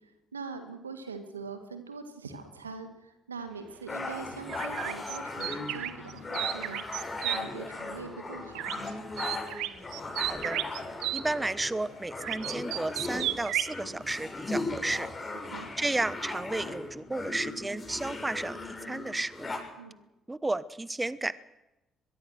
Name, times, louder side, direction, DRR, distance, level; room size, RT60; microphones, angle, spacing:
voice 1, 0.0-8.8 15.5-15.7 19.8-20.0, right 4 dB, 90° right, 9 dB, 1.8 m, -43 dB
sound 1, 3.9-19.6, left 2 dB, 30° left, 7.2 m, -38 dB
sound 2, 4.5-7.4 8.5-8.9 9.2-11.2 12.2-13.7, right 14 dB, 65° right, 1.0 m, -33 dB
voice 2, 10.3-10.6 11.1-15.1 15.8-18.6 18.8-19.5 20.3-21.4, right 2 dB, 15° right, 18 dB, 1.1 m, -32 dB
22.5 x 22.5 x 6.5 m, 0.98 s
figure-of-eight pair, 45°, 0 cm